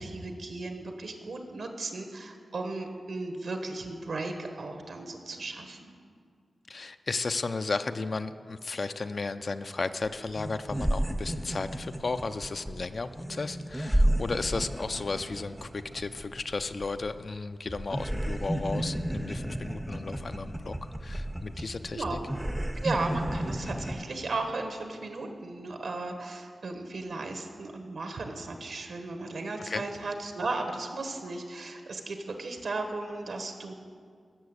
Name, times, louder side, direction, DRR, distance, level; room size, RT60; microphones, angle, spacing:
voice 1, 0.0-5.9 21.6-22.3 22.7-33.7, right 3 dB, 70° right, 5 dB, 1.2 m, -36 dB
voice 2, 6.7-20.8 21.0-22.2 29.7-29.8, left 3 dB, 40° left, 9 dB, 0.4 m, -34 dB
sound 1, 10.0-10.1 10.3-17.4 17.7-24.0, right 1 dB, 5° right, 0.6 m, -32 dB
15.0 x 6.8 x 8.0 m, 2.1 s
wide cardioid pair, 150°, 0 cm